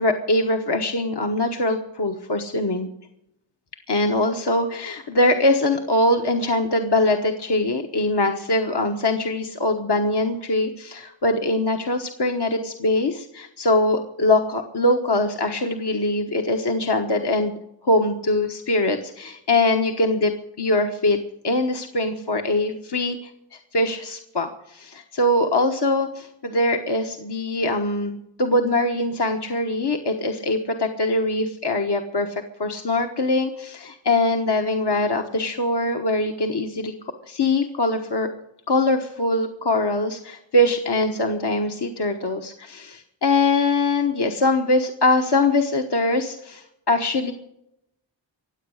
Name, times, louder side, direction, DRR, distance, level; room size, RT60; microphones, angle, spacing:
voice 1, 0.0-2.9 3.9-17.6 17.8-21.2 21.4-38.3 38.7-47.3, left 2 dB, 60° left, 3 dB, 1.3 m, -22 dB
24.0 x 8.2 x 6.4 m, 0.82 s
wide cardioid pair, 60°, 46 cm